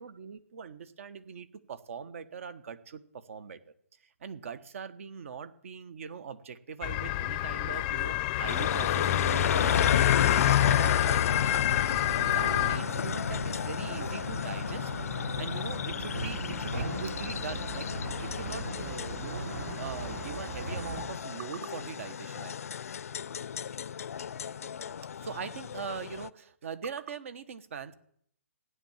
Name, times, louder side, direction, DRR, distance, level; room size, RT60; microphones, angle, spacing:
voice 1, 0.0-3.6 4.2-11.5 11.8-14.9 15.3-19.5 19.8-22.7 25.1-27.9, right 6 dB, 60° right, 14 dB, 1.3 m, -42 dB
sound 1, 6.8-12.8, left 14 dB, 25° left, 0.6 m, -27 dB
sound 2, 8.5-26.3, left 8 dB, 70° left, 0.5 m, -33 dB
sound 3, 11.3-21.0, right 2 dB, 80° right, 5.0 m, -39 dB
16.0 x 9.8 x 7.4 m, 0.65 s
hypercardioid pair, 155°, 8 cm